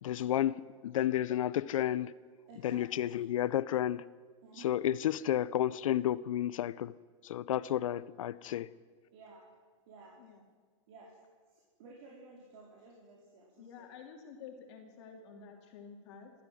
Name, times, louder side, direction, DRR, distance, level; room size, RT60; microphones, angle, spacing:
voice 1, 0.0-2.1 2.6-4.0 4.6-6.9 7.2-8.7, left 11 dB, 75° left, 18 dB, 0.7 m, -31 dB
voice 2, 2.5-3.1 4.4-4.8 9.1-9.5 9.9-10.2 10.9-11.2 11.5-13.9 14.8-14.9, right 3 dB, 55° right, -3 dB, 4.7 m, -54 dB
voice 3, 13.6-16.3, left 6 dB, 55° left, 2 dB, 3.2 m, -50 dB
28.5 x 13.5 x 7.8 m, 1.5 s
supercardioid pair, 150°, 17 cm